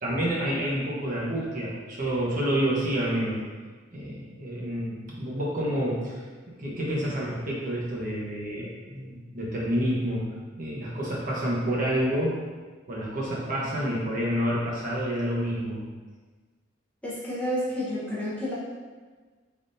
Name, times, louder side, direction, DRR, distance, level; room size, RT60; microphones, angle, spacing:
voice 1, 0.0-3.4 3.9-6.2 6.6-10.3 10.6-12.4 12.9-15.8, equal, 40° right, -5 dB, 0.9 m, -28 dB
voice 2, 17.0-18.5, equal, 5° left, -8 dB, 0.7 m, -30 dB
3.9 x 3.5 x 2.6 m, 1.4 s
head